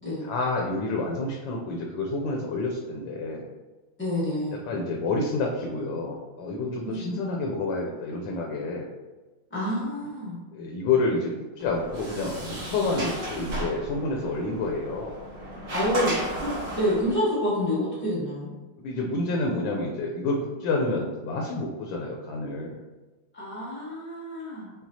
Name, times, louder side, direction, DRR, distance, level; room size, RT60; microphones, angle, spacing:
voice 1, 0.2-3.5 4.6-8.9 10.5-11.3 11.6-15.2 18.8-22.8, left 3 dB, 75° left, 0 dB, 1.2 m, -29 dB
voice 2, 4.0-4.6 6.8-7.0 9.5-10.4 15.7-18.5 23.3-24.7, equal, 15° left, -8 dB, 0.4 m, -28 dB
Sliding door, 11.6-17.2, right 1 dB, 45° right, 1.4 m, -34 dB
5.7 x 2.4 x 2.7 m, 1.2 s
omnidirectional pair, 2.2 m